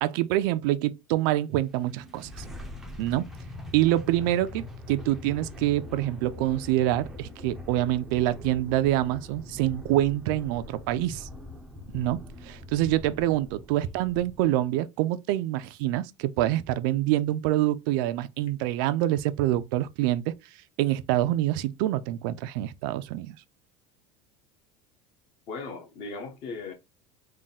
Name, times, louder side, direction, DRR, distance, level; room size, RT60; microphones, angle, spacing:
voice 1, 0.0-2.4 3.0-3.2 3.7-11.3 11.9-20.3 20.8-23.3, right 14 dB, 60° right, 0.4 m, -26 dB
sound 1, 1.5-14.7, left 2 dB, ahead, 0.5 m, -43 dB
voice 2, 25.5-26.7, left 4 dB, 40° left, 0.9 m, -37 dB
3.7 x 2.2 x 4.0 m
cardioid pair, 180°, 13 cm